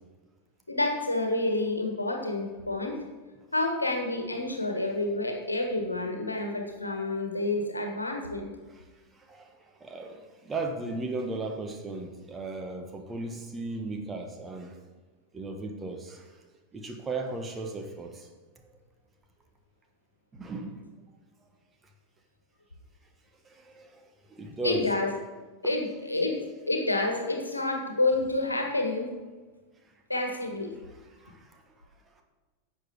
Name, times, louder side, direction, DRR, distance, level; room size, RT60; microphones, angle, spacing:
voice 1, 0.7-3.0 3.5-8.5 24.6-25.1 25.6-26.4 26.7-29.1 30.1-30.7, left 2 dB, 80° left, 3 dB, 1.4 m, -29 dB
voice 2, 9.1-14.8 15.3-16.4 16.7-18.3 20.3-20.9 23.4-24.9 25.6-25.7 31.2-31.6 32.2-32.3, right 2 dB, 15° right, 4 dB, 1.3 m, -36 dB
11.0 x 7.1 x 4.8 m, 1.3 s
figure-of-eight pair, 90°, 0 cm